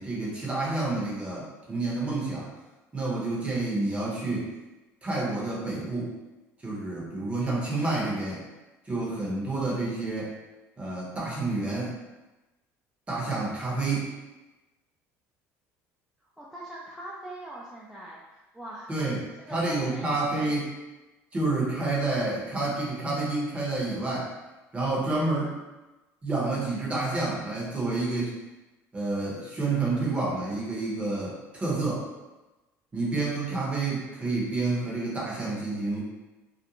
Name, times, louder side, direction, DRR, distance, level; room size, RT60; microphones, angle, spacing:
voice 1, 0.0-2.5 2.9-4.5 5.0-6.1 6.6-8.5 8.9-10.3 10.8-11.9 13.1-14.1 18.9-20.7 21.3-24.3 24.7-25.6 26.2-28.3 28.9-32.1 32.9-36.0, right 2 dB, 20° right, -5 dB, 0.9 m, -29 dB
voice 2, 16.4-18.9 19.4-20.5, right 1 dB, 5° right, -7 dB, 0.4 m, -42 dB
2.5 x 2.1 x 2.9 m, 1.1 s
cardioid pair, 110°, 6 cm